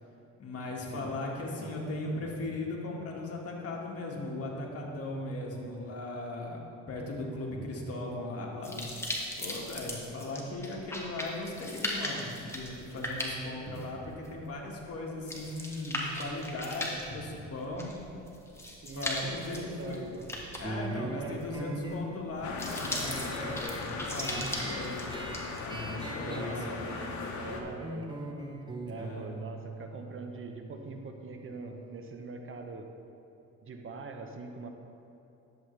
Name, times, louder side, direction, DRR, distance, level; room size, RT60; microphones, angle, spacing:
voice 1, 0.4-8.9 9.4-17.9 18.9-20.0 20.6-25.3 25.6-26.7 28.9-29.2, left 2 dB, 50° left, -1 dB, 1.7 m, -38 dB
sound 1, 8.6-25.6, left 1 dB, 10° left, 1.4 m, -38 dB
voice 2, 18.8-20.3 21.1-21.4 25.6-25.7 26.2-28.1 28.8-32.9 33.6-34.7, right 3 dB, 45° right, 4 dB, 0.8 m, -43 dB
sound 2, 20.6-31.8, right 2 dB, 15° right, 0.9 m, -41 dB
sound 3, 22.4-27.6, left 4 dB, 70° left, 1.0 m, -38 dB
10.5 x 7.7 x 3.2 m, 2.9 s
cardioid pair, 90°, 30 cm